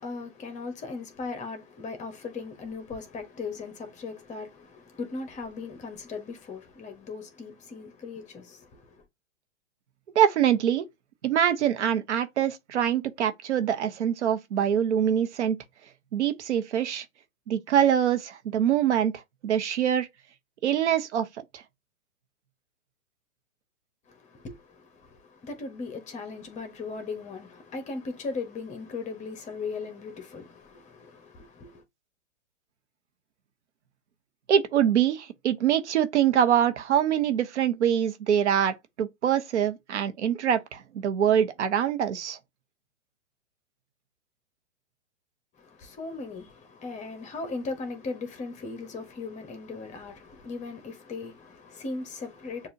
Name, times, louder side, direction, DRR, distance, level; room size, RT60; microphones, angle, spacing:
voice 1, 0.0-9.0 24.1-31.8 45.6-52.7, left 4 dB, 20° left, 1.2 m, -38 dB
voice 2, 10.1-10.8 11.2-15.6 16.1-17.0 17.5-20.1 20.6-21.3 21.5-21.6 34.5-42.4, right 9 dB, 65° right, 1.1 m, -24 dB
6.8 x 2.7 x 2.7 m
hypercardioid pair, 125°, 37 cm